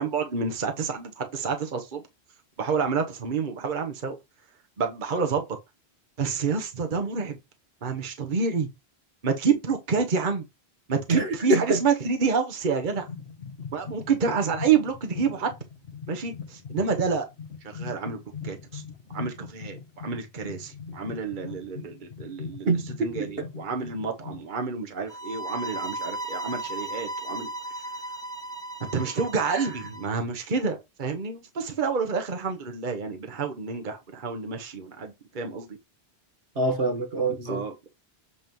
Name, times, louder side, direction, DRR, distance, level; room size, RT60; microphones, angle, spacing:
voice 1, 0.0-2.0 2.6-4.1 4.8-5.4 6.2-7.4 7.8-8.7 9.2-10.4 10.9-13.1 13.7-15.5 16.1-17.2 17.6-18.8 19.1-22.7 23.0-27.5 28.8-35.8 37.5-37.9, right 5 dB, 50° right, 1.2 m, -28 dB
voice 2, 11.1-11.8 22.7-23.5 29.5-29.6 36.6-37.6, right 2 dB, 70° right, 1.6 m, -26 dB
sound 1, 12.8-24.5, left 5 dB, 85° left, 1.5 m, -41 dB
sound 2, 25.1-30.1, right 2 dB, 5° left, 0.7 m, -35 dB
8.3 x 3.1 x 5.3 m
omnidirectional pair, 1.1 m